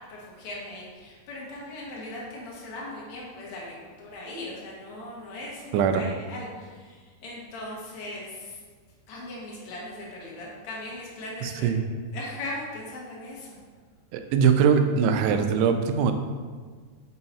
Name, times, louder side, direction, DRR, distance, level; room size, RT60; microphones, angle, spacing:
voice 1, 0.1-8.6 9.1-11.7 12.1-13.5, left 1 dB, 80° left, -5 dB, 1.6 m, -39 dB
voice 2, 5.7-6.0 11.4-11.8 14.1-16.1, right 6 dB, 90° right, 7 dB, 3.0 m, -22 dB
5.7 x 5.6 x 4.1 m, 1.5 s
omnidirectional pair, 5.2 m